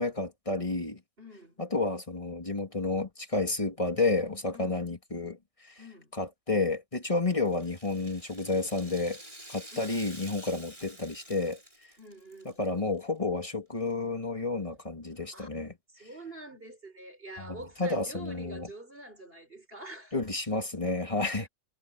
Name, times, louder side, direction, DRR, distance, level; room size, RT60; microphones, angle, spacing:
voice 1, 0.0-1.0 1.6-5.7 6.2-9.2 9.5-11.6 12.6-15.7 17.4-18.7 20.1-21.5, left 3 dB, 25° left, 2.0 m, -31 dB
voice 2, 1.2-1.6 4.5-4.8 5.8-6.2 9.7-10.0 12.0-12.6 15.3-15.5 16.0-20.2 21.3-21.5, right 1 dB, 40° right, 5.1 m, -46 dB
Rattle (instrument), 7.4-12.7 13.0-13.1 13.9-14.0, right 1 dB, 20° right, 6.6 m, -49 dB
omnidirectional pair, 1.5 m